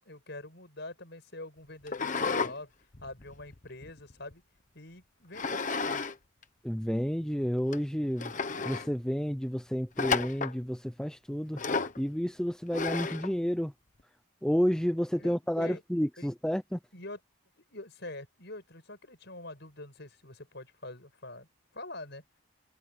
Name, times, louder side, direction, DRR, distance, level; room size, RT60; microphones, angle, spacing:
voice 1, 0.0-2.7 3.0-4.4 4.7-6.0 15.2-15.8 16.2-16.3 16.9-17.2 17.6-21.5 21.7-22.2, left 2 dB, 55° left, 7.8 m, -45 dB
sound 1, 1.9-2.5 2.9-4.3 5.3-6.1 6.4-6.5 7.2-7.3 7.7-7.8 8.2-8.9 10.0-10.6 11.6-12.0 12.7-13.3, left 4 dB, 35° left, 1.2 m, -32 dB
voice 2, 6.6-8.3 8.6-11.6 12.0-13.7 14.4-16.8, equal, 5° left, 0.6 m, -30 dB
head